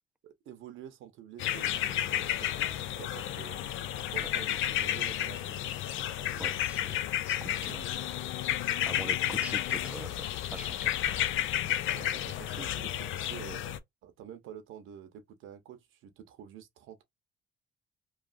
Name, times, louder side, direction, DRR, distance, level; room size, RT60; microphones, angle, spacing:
voice 1, 0.2-3.6 4.1-5.6 7.7-7.8 11.9-13.6 14.0-17.0, right 9 dB, 90° right, 0.8 m, -48 dB
sound 1, 1.4-13.8, left 12 dB, 80° left, 0.5 m, -32 dB
voice 2, 6.4-7.0 7.3-7.8 8.8-11.3 11.6-11.7, right 2 dB, 5° right, 0.5 m, -44 dB
3.2 x 2.4 x 2.5 m
cardioid pair, 90°, 20 cm